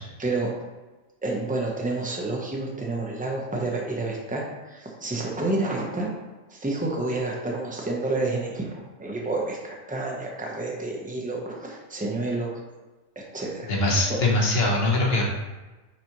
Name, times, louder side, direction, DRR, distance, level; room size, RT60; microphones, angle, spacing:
voice 1, 0.2-0.5 1.2-6.1 6.5-12.6 13.1-13.7 14.1-14.2 14.6-14.7, right 2 dB, 5° right, -1 dB, 0.9 m, -29 dB
voice 2, 13.7-15.2, left 2 dB, 50° left, -2 dB, 1.5 m, -22 dB
8.9 x 4.2 x 3.1 m, 1.2 s
omnidirectional pair, 1.4 m